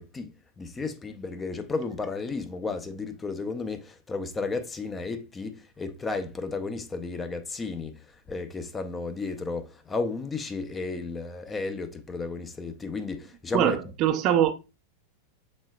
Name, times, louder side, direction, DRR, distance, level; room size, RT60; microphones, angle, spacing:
voice 1, 0.0-7.9 8.3-13.8, left 3 dB, 15° left, 0.5 m, -33 dB
voice 2, 13.5-14.5, right 10 dB, 40° right, 0.5 m, -23 dB
6.1 x 3.6 x 2.2 m
figure-of-eight pair, 90°, 0 cm